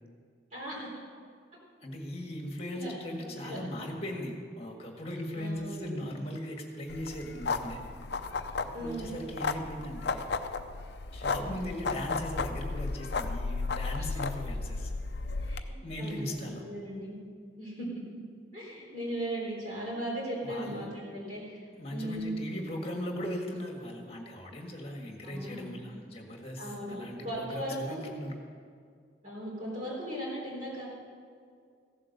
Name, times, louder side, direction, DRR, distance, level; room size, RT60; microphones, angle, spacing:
voice 1, 0.5-0.9 2.7-2.9 3.2-3.6 5.3-5.9 8.7-9.2 11.4-11.7 14.0-14.1 15.4-17.2 17.6-17.9 18.5-21.7 21.9-22.3 25.2-25.7 26.6-27.0 27.2-28.0 29.2-30.9, right 1 dB, 40° right, -7 dB, 4.0 m, -38 dB
voice 2, 1.8-7.8 8.8-10.3 11.1-14.9 15.8-16.6 20.4-21.2 21.7-28.4, equal, 30° left, 1 dB, 1.7 m, -38 dB
sound 1, 6.9-15.6, left 4 dB, 60° left, 0.6 m, -34 dB
15.5 x 7.5 x 6.7 m, 2.2 s
head